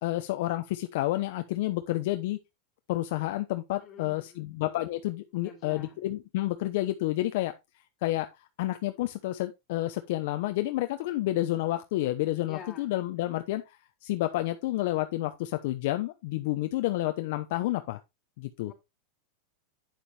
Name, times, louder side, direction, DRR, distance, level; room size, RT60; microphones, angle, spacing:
voice 1, 0.0-2.4 2.9-7.5 8.0-8.3 8.6-18.0 18.4-18.7, left 16 dB, 60° left, 0.8 m, -30 dB
voice 2, 3.8-4.4 5.4-6.0 12.5-12.9 13.3-13.4 18.7-18.8, left 6 dB, 25° left, 4.1 m, -47 dB
9.3 x 7.2 x 3.3 m
supercardioid pair, 150°, 0 cm